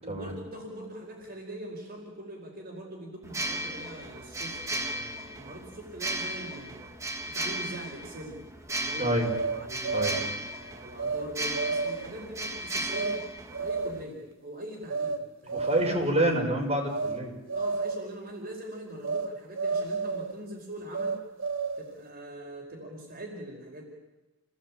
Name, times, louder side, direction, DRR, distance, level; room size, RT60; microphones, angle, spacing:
voice 1, 0.0-6.9 7.2-8.4 8.7-9.1 9.5-13.2 13.6-15.7 17.5-21.2 21.8-23.8, right 1 dB, 50° right, 0 dB, 4.8 m, -42 dB
sound 1, 3.2-14.0, right 1 dB, 15° right, 2.2 m, -36 dB
voice 2, 9.0-9.3 9.9-10.2 15.5-17.3, right 1 dB, 30° right, -1 dB, 6.1 m, -27 dB
sound 2, 9.2-10.3 11.0-11.3 11.5-12.2 12.9-13.2 13.5-14.1 14.9-15.2 15.5-16.1 16.9-17.2 17.5-18.1 19.0-19.3 19.5-20.4 20.9-21.9, right 4 dB, 75° right, 3.6 m, -31 dB
30.0 x 19.5 x 8.9 m, 1.1 s
head